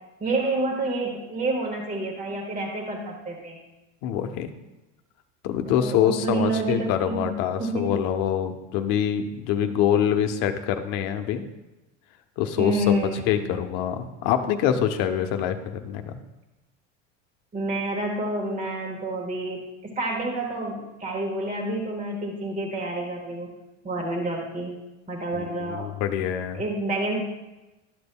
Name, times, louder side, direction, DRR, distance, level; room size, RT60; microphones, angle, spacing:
voice 1, 0.2-3.6 5.7-7.3 7.6-8.0 12.6-13.2 17.5-23.5 23.8-24.7 25.1-25.9 26.5-27.2, right 2 dB, 20° right, 0 dB, 1.4 m, -28 dB
voice 2, 4.0-4.5 5.4-11.5 12.4-16.2 25.3-26.6, left 9 dB, 60° left, 7 dB, 0.9 m, -25 dB
12.0 x 6.8 x 2.2 m, 1.0 s
supercardioid pair, 110°, 37 cm